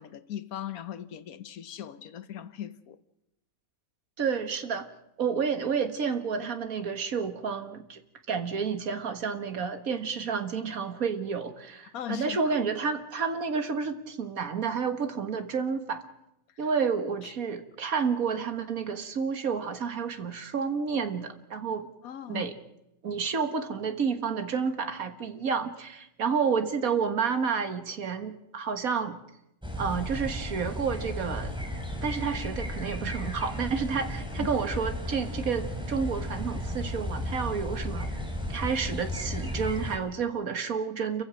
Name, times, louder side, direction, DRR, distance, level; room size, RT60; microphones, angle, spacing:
voice 1, 0.0-3.0 11.9-12.6 16.6-16.7 17.2-17.3 22.0-22.5 34.4-34.5, left 10 dB, 90° left, 1.4 m, -39 dB
voice 2, 4.2-4.9 5.2-8.0 8.3-16.0 16.6-21.9 22.3-22.5 23.0-29.2 29.8-31.6 32.0-38.1 38.5-41.2, right 6 dB, 80° right, 2.0 m, -30 dB
sound 1, 29.6-40.0, left 1 dB, 5° right, 2.8 m, -34 dB
29.0 x 15.5 x 6.3 m
omnidirectional pair, 1.5 m